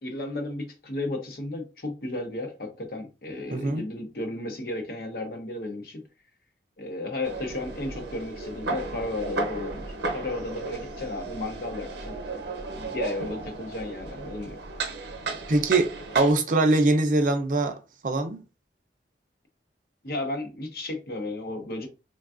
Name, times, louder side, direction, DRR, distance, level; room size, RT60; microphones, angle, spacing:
voice 1, 0.0-6.0 6.8-12.2 12.9-14.6 20.0-21.9, left 2 dB, 55° left, 0.7 m, -34 dB
voice 2, 3.5-3.8 15.5-17.7 18.0-18.4, right 2 dB, 45° right, 0.4 m, -22 dB
sound 1, 7.2-16.3, right 3 dB, 85° right, 0.7 m, -34 dB
3.4 x 2.3 x 2.4 m
head